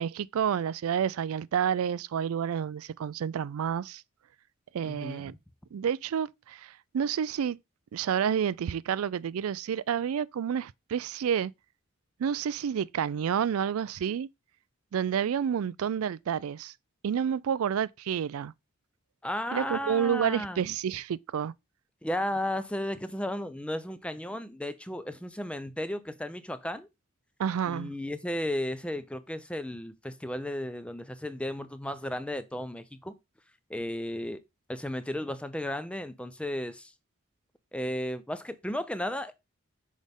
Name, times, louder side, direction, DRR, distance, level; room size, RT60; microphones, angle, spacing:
voice 1, 0.0-4.0 4.7-5.3 5.7-7.6 7.9-11.5 12.2-14.3 14.9-16.7 17.0-18.5 19.5-21.5 27.4-27.9, right 8 dB, 90° right, 0.4 m, -29 dB
voice 2, 4.8-5.3 19.2-20.6 22.0-26.9 27.7-33.1 33.7-34.4 34.7-36.9 37.7-39.3, left 1 dB, 5° left, 0.5 m, -34 dB
6.3 x 5.2 x 3.5 m
head